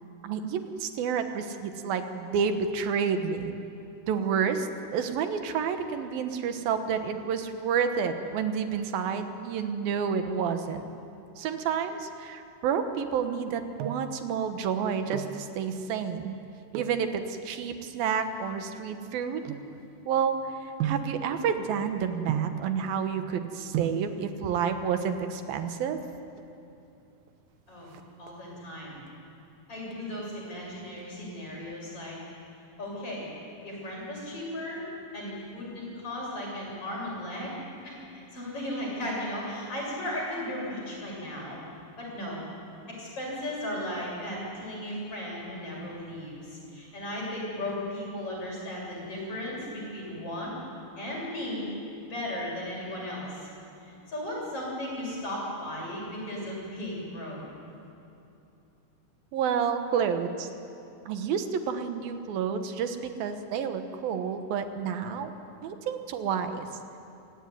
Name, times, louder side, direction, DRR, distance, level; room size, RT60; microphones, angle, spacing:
voice 1, 0.2-3.5 4.1-10.8 11.4-16.4 16.7-19.6 20.1-26.0 59.3-60.5 61.1-65.3 65.6-66.7, right 7 dB, 65° right, 8 dB, 2.5 m, -30 dB
sound 1, 13.4-14.2 14.9-15.5 16.7-17.1 17.8-20.2 20.8-21.2 22.3-22.7 23.4-23.5 23.7-24.1 25.2-25.8 26.1-26.2 26.4-26.5 26.9-27.3 27.6-28.6 29.1-29.5 29.9-31.0 31.3-31.4, right 10 dB, 90° right, 3.8 m, -35 dB
voice 2, 28.2-29.0 29.7-32.2 32.8-33.3 33.6-34.9 35.1-41.6 42.0-42.4 42.9-50.5 51.0-51.7 52.0-53.5 53.8-57.4, left 1 dB, 30° left, -3 dB, 8.0 m, -36 dB
27.5 x 17.5 x 9.9 m, 2.8 s
omnidirectional pair, 5.5 m